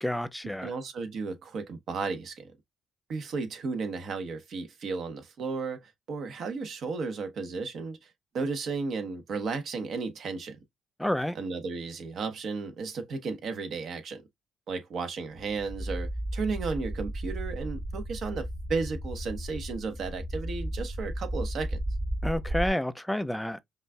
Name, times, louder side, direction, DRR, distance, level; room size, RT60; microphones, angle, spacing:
voice 1, 0.0-0.7 11.0-11.4 22.2-23.6, left 1 dB, 5° left, 0.4 m, -29 dB
voice 2, 0.6-2.5 3.1-10.6 11.3-14.2 14.7-21.8, right 4 dB, 65° right, 1.1 m, -34 dB
sound 1, 15.4-22.7, right 1 dB, 25° right, 1.0 m, -34 dB
5.4 x 2.5 x 2.2 m
cardioid pair, 90°, 0 cm